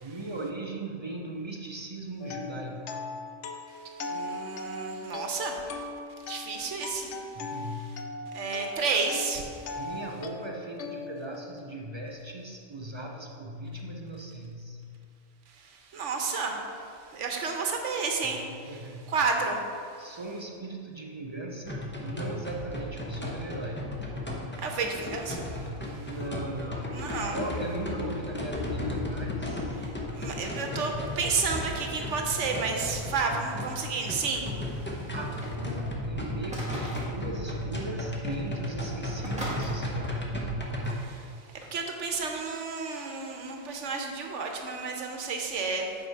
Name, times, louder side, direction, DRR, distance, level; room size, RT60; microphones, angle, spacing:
voice 1, 0.0-3.1 7.3-8.4 9.7-15.0 18.2-19.0 20.0-24.2 25.8-29.7 35.1-40.7, right 1 dB, 45° right, 1 dB, 0.4 m, -39 dB
sound 1, 2.2-12.1, left 3 dB, 75° left, 0.9 m, -39 dB
voice 2, 4.0-5.8 6.3-7.1 8.3-9.6 15.9-16.6 17.1-18.8 19.1-19.6 24.6-25.6 26.9-27.4 30.1-34.6 40.9-41.3 41.7-45.9, right 4 dB, 75° right, 3 dB, 1.2 m, -31 dB
sound 2, 21.7-40.9, left 1 dB, 10° left, 0.6 m, -34 dB
sound 3, 35.1-35.9 36.5-37.2 38.0-38.1 38.4-38.6 39.2-39.7 41.6-41.8, equal, 5° right, 1.5 m, -39 dB
7.9 x 4.8 x 4.5 m, 2.4 s
omnidirectional pair, 1.2 m